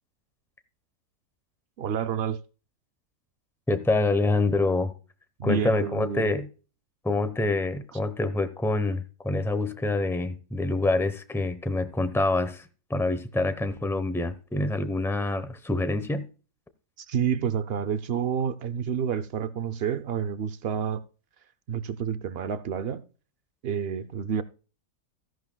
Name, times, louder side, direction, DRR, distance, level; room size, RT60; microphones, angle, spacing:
voice 1, 1.8-2.4 5.4-6.3 7.9-8.0 17.0-21.0 21.7-23.0 23.6-24.4, right 7 dB, 85° right, 0.5 m, -29 dB
voice 2, 3.7-4.9 5.4-6.5 7.0-12.6 12.9-16.2, left 2 dB, 5° left, 0.4 m, -26 dB
14.5 x 11.0 x 2.2 m
omnidirectional pair, 1.7 m